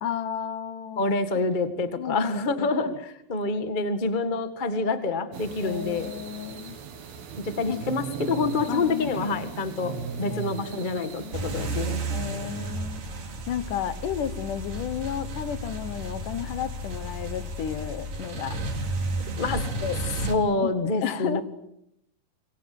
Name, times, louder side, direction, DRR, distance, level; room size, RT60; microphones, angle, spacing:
voice 1, 0.0-1.1 2.0-3.0 5.6-6.8 7.7-7.8 8.7-9.3 10.3-10.4 10.9-11.3 12.1-13.0 13.5-18.6 19.8-20.0 20.6-21.4, left 9 dB, 65° left, 13 dB, 2.5 m, -33 dB
voice 2, 1.0-6.1 7.4-12.0 12.3-12.4 19.4-19.7 20.2-21.4, left 3 dB, 50° left, 10 dB, 0.5 m, -27 dB
sound 1, 5.3-11.9, right 6 dB, 90° right, 4.4 m, -38 dB
sound 2, 11.3-20.4, right 2 dB, 65° right, 4.6 m, -32 dB
27.0 x 24.0 x 7.9 m, 0.79 s
omnidirectional pair, 4.3 m